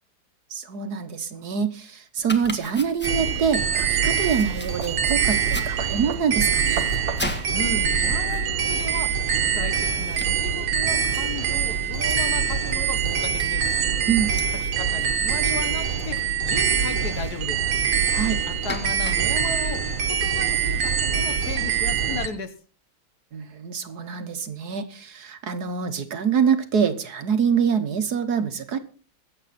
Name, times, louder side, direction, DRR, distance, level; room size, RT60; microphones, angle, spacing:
voice 1, 0.5-6.9 14.1-14.3 18.1-18.4 23.3-28.8, right 7 dB, 60° right, 9 dB, 1.7 m, -25 dB
Domestic sounds home sounds, 2.2-20.6, equal, 5° left, 1.4 m, -41 dB
sound 1, 3.0-8.3, right 5 dB, 40° right, 1.3 m, -38 dB
sound 2, 3.0-22.3, right 7 dB, 80° right, 2.1 m, -24 dB
voice 2, 7.5-9.2 9.4-13.7 14.5-17.6 18.5-22.5, left 5 dB, 60° left, 10 dB, 1.6 m, -35 dB
23.5 x 8.0 x 4.2 m, 0.38 s
omnidirectional pair, 2.0 m